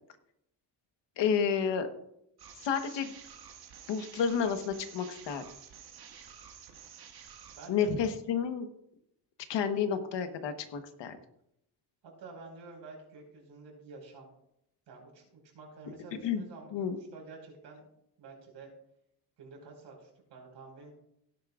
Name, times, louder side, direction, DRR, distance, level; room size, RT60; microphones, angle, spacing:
voice 1, 1.2-1.9 2.6-3.1 3.9-5.4 7.7-8.7 9.5-11.2 16.2-16.4 16.7-17.0, left 7 dB, 80° left, 8 dB, 1.3 m, -30 dB
sound 1, 2.4-7.7, right 7 dB, 60° right, 1.9 m, -51 dB
voice 2, 7.5-8.1 12.0-14.3 14.9-17.8 18.2-18.7 19.4-20.9, right 3 dB, 75° right, 0 dB, 5.1 m, -50 dB
17.0 x 10.5 x 2.5 m, 0.78 s
cardioid pair, 165°, 42 cm